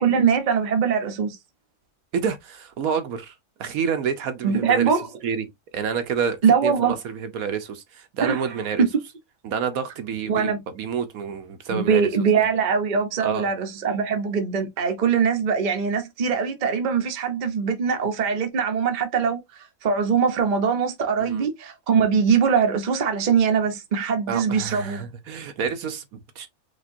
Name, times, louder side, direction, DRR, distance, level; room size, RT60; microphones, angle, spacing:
voice 1, 0.0-1.4 4.4-5.1 6.4-6.9 8.2-8.9 10.3-10.6 11.7-25.0, right 6 dB, 40° right, 0.8 m, -22 dB
voice 2, 2.1-3.3 3.6-4.9 5.2-5.5 5.7-8.8 9.4-12.1 13.2-13.5 21.2-21.5 24.3-26.5, right 6 dB, 70° right, 1.2 m, -28 dB
5.0 x 3.3 x 2.6 m
omnidirectional pair, 1.6 m